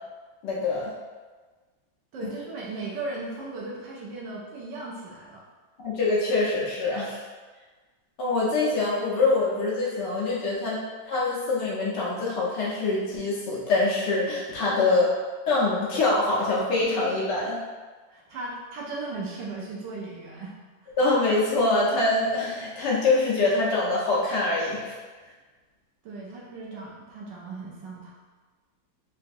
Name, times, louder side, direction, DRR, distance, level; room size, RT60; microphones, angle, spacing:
voice 1, 0.4-0.9 5.8-7.2 8.2-10.8 11.1-15.1 15.5-17.6 21.0-25.0, left 3 dB, 70° left, -5 dB, 1.2 m, -24 dB
voice 2, 2.1-5.4 14.6-15.1 18.1-20.6 20.8-20.9 26.0-28.1, right 3 dB, 70° right, -4 dB, 1.2 m, -37 dB
4.0 x 2.4 x 2.5 m, 1.3 s
omnidirectional pair, 2.1 m